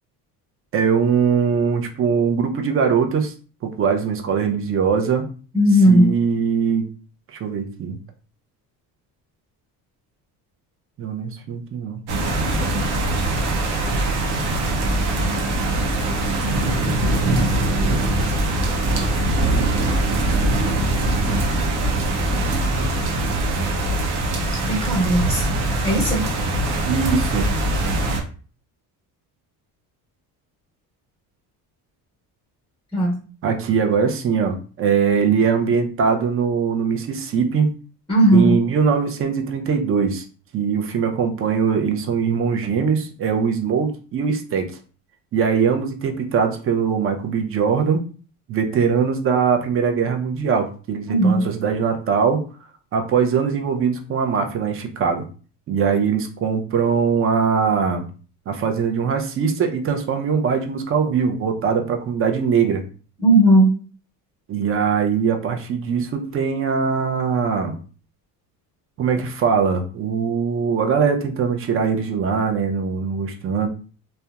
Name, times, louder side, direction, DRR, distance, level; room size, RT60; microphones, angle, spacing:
voice 1, 0.7-3.3 3.6-5.3 5.9-6.8 7.3-8.0 11.0-12.0 26.8-27.5 33.4-37.7 38.3-40.3 40.5-44.7 45.3-48.1 48.5-52.4 52.9-55.3 55.7-58.1 58.5-62.8 64.5-67.8 69.0-73.7, right 6 dB, 35° right, 5 dB, 0.4 m, -21 dB
voice 2, 5.5-6.1 24.7-25.4 25.8-26.2 32.9-33.2 38.1-38.5 51.1-51.4 63.2-63.7, right 1 dB, 10° left, -3 dB, 0.9 m, -16 dB
sound 1, 12.1-28.2, right 2 dB, 70° right, 0.7 m, -22 dB
2.8 x 2.1 x 2.3 m, 0.38 s
cardioid pair, 125°, 40 cm